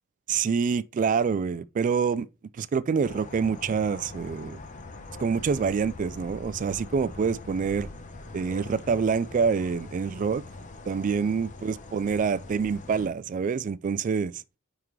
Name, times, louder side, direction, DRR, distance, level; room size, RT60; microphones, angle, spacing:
voice 1, 0.3-2.3 2.6-4.6 5.2-7.9 8.3-10.4 10.9-14.3, right 5 dB, 40° right, 0.3 m, -26 dB
sound 1, 3.0-13.1, left 2 dB, 40° left, 0.9 m, -43 dB
9.3 x 3.7 x 3.2 m
head